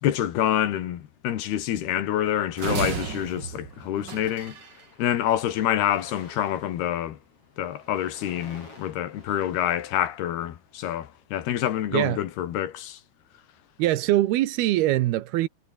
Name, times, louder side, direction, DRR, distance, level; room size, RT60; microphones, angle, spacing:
voice 1, 0.0-4.6 5.0-7.2 7.6-13.0, left 11 dB, 70° left, 3.6 m, -27 dB
sound 1, 2.1-3.1 3.8-4.0 4.3-10.8, left 3 dB, 30° left, 8.4 m, -51 dB
sound 2, 2.6-4.8, right 6 dB, 45° right, 1.4 m, -32 dB
voice 2, 13.8-15.5, right 15 dB, 75° right, 2.7 m, -23 dB
omnidirectional pair, 4.9 m